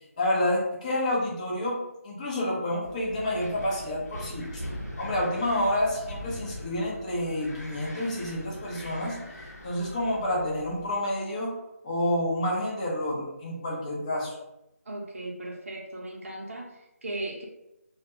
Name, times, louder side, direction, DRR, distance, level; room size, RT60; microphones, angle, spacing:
voice 1, 0.2-1.8 2.0-4.6 5.0-9.2 9.6-11.5 11.8-14.3, left 1 dB, 25° left, -4 dB, 0.7 m, -29 dB
Wind, 2.8-11.0, equal, 90° left, 0.8 m, -41 dB
voice 2, 14.9-17.5, right 1 dB, 55° right, -2 dB, 0.7 m, -37 dB
2.3 x 2.1 x 2.9 m, 0.90 s
figure-of-eight pair, 160°, 8 cm